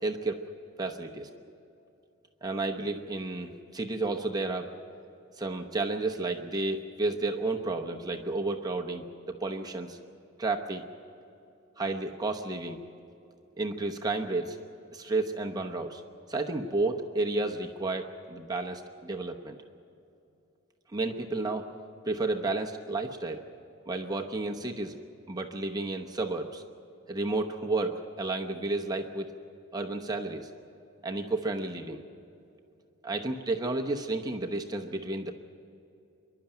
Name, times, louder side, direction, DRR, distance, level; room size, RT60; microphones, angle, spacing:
voice 1, 0.0-0.4 0.8-1.3 2.4-4.7 5.4-10.0 10.4-10.8 11.8-12.8 13.6-14.6 14.9-16.0 16.3-19.6 20.9-21.7 22.0-23.4 23.9-24.9 25.3-26.7 27.1-29.3 29.7-30.5 31.0-32.0 33.0-35.3, right 2 dB, 20° right, 3 dB, 0.9 m, -31 dB
25.5 x 11.5 x 9.0 m, 2.7 s
head